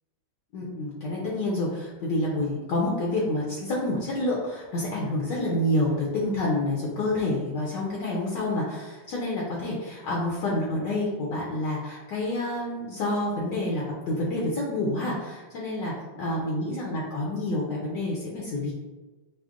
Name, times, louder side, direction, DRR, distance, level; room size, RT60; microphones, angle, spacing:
voice 1, 0.5-18.7, left 1 dB, 70° left, -4 dB, 1.2 m, -28 dB
6.1 x 2.1 x 2.4 m, 1.2 s
omnidirectional pair, 2.1 m